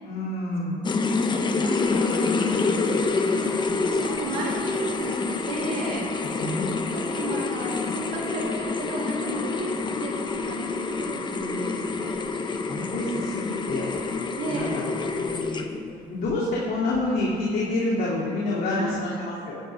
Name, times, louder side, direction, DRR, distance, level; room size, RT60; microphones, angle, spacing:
voice 1, 0.0-0.8 6.4-6.8 12.3-13.9 14.5-15.7 16.1-19.6, left 2 dB, 60° left, -6 dB, 2.5 m, -28 dB
sound 1, 0.8-15.9, left 4 dB, 25° left, 0.8 m, -27 dB
voice 2, 1.2-3.6 3.9-6.1 6.9-12.1 14.4-14.8 18.8-18.9, right 2 dB, 70° right, -5 dB, 3.4 m, -33 dB
15.0 x 10.0 x 3.5 m, 2.4 s
cardioid pair, 110°, 17 cm